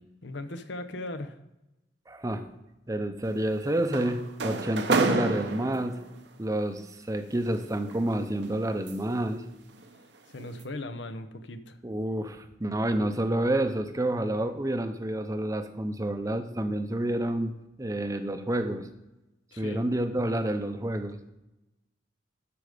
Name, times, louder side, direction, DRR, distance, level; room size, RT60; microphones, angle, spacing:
voice 1, 0.2-1.4 10.3-11.8 19.5-19.8, left 2 dB, 75° left, 9 dB, 0.8 m, -38 dB
voice 2, 2.1-2.5 2.9-6.0 6.4-9.4 11.8-18.9 19.6-21.2, right 1 dB, 20° right, 8 dB, 0.6 m, -29 dB
sound 1, 3.2-6.2 7.3-9.3 9.7-10.0 10.4-10.6, right 3 dB, 70° right, 0.8 m, -31 dB
13.0 x 5.1 x 5.0 m, 0.94 s
head